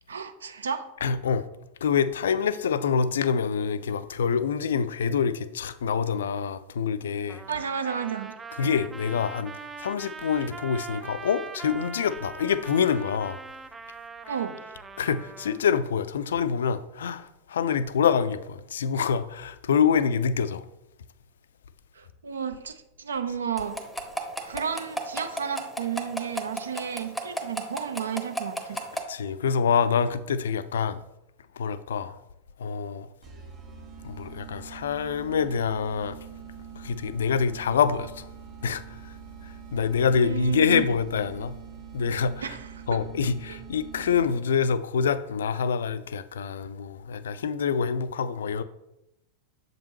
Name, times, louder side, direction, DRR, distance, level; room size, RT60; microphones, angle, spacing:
voice 1, 0.1-0.9 7.5-8.4 14.3-14.5 21.9-23.8 24.4-28.8 40.2-41.0 42.4-43.0 43.5-43.6, right 7 dB, 70° right, 0.5 m, -32 dB
voice 2, 1.0-1.5 1.8-7.4 8.6-9.5 9.8-13.4 15.0-20.6 29.1-31.0 31.6-32.2 32.6-33.1 34.0-36.2 36.8-38.3 38.6-39.2 39.4-41.6 41.9-42.6 42.9-48.6, left 6 dB, 65° left, 0.3 m, -26 dB
Trumpet, 7.3-15.6, right 5 dB, 15° right, 0.3 m, -42 dB
sound 1, 23.6-29.0, equal, ahead, 0.8 m, -32 dB
sound 2, 33.2-44.6, right 7 dB, 30° right, 1.5 m, -44 dB
7.2 x 5.2 x 3.0 m
figure-of-eight pair, 90°, 0 cm